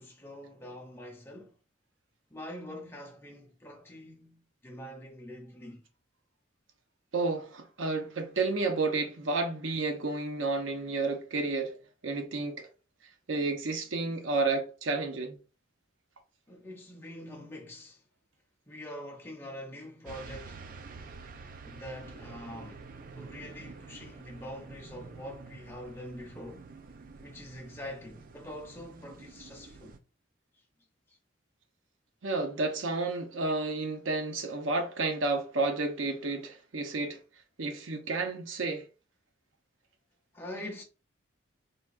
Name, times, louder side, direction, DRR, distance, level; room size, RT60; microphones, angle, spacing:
voice 1, 0.0-1.5 2.3-5.8 16.5-18.0 18.7-20.6 21.6-22.9 23.1-26.7 27.2-29.9 40.3-40.8, left 1 dB, 10° left, 0.6 m, -44 dB
voice 2, 7.1-11.8 12.0-12.7 13.3-15.4 32.2-37.2 37.6-38.8, right 3 dB, 85° right, 0.7 m, -31 dB
sound 1, 20.0-30.0, right 4 dB, 45° right, 0.3 m, -48 dB
3.9 x 2.2 x 2.4 m
head